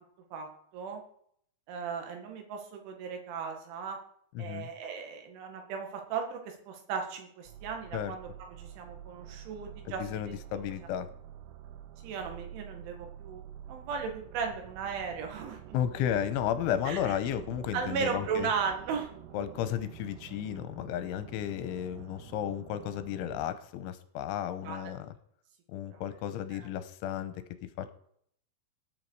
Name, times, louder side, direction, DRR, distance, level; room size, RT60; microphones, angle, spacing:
voice 1, 0.3-1.0 1.7-4.0 4.4-8.3 8.6-10.4 12.0-15.8 16.9-17.1 17.7-19.1 24.6-24.8 25.9-26.0 26.5-26.7, right 6 dB, 75° right, 3 dB, 4.3 m, -36 dB
voice 2, 4.3-4.7 7.9-8.1 10.0-11.1 15.7-18.5 19.3-25.1 25.7-27.3 27.8-27.9, left 10 dB, 85° left, 11 dB, 3.2 m, -33 dB
sound 1, 7.4-23.5, right 11 dB, 90° right, 2.3 m, -48 dB
18.5 x 9.1 x 4.8 m, 0.67 s
omnidirectional pair, 5.7 m